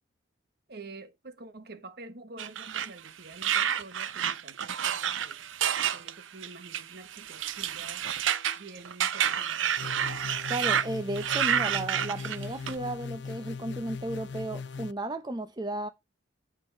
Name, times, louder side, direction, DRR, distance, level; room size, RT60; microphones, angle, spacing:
voice 1, 0.7-5.4 5.8-8.1 8.6-10.1, right 3 dB, 55° right, 1.1 m, -48 dB
sound 1, 2.4-10.9 11.2-12.7, right 9 dB, 80° right, 0.6 m, -29 dB
sound 2, 9.8-14.9, left 5 dB, 60° left, 0.5 m, -39 dB
voice 2, 10.5-15.9, right 1 dB, 20° right, 0.6 m, -34 dB
8.9 x 5.4 x 4.5 m
head